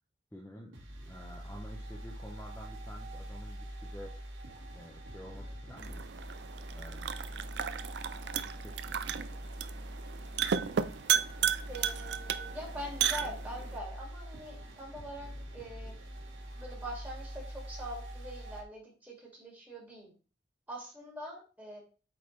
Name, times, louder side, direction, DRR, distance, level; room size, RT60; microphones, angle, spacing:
voice 1, 0.3-0.8 1.1-4.1 4.7-6.1 6.7-7.2 8.0-9.5, equal, 10° left, -2 dB, 0.9 m, -50 dB
sound 1, 0.7-18.6, right 1 dB, 90° right, 1.8 m, -44 dB
sound 2, 5.8-13.8, right 8 dB, 60° right, 0.4 m, -34 dB
voice 2, 11.7-16.0 16.6-20.1 20.7-21.8, equal, 10° right, -3 dB, 2.2 m, -44 dB
8.2 x 3.9 x 3.3 m, 0.36 s
head